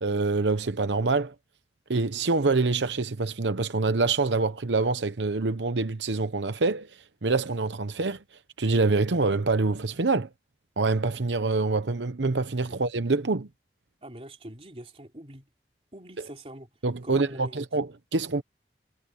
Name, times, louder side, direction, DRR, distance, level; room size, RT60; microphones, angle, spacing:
voice 1, 0.0-1.3 1.9-6.9 7.2-8.2 8.6-10.3 10.8-13.5 16.8-18.4, right 3 dB, 90° right, 0.9 m, -25 dB
voice 2, 14.0-15.5 15.9-16.7 17.0-17.7, right 1 dB, 35° right, 3.5 m, -43 dB
head